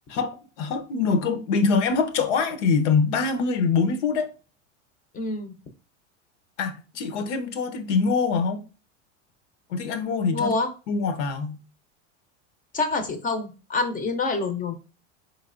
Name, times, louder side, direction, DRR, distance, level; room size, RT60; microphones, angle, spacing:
voice 1, 0.1-4.3 6.6-8.6 9.7-10.5 10.9-11.6, left 5 dB, 80° left, 0.8 m, -24 dB
voice 2, 5.1-5.5 10.3-10.7 12.7-14.7, left 3 dB, 25° left, 0.6 m, -26 dB
4.1 x 3.2 x 2.4 m
supercardioid pair, 120°, 36 cm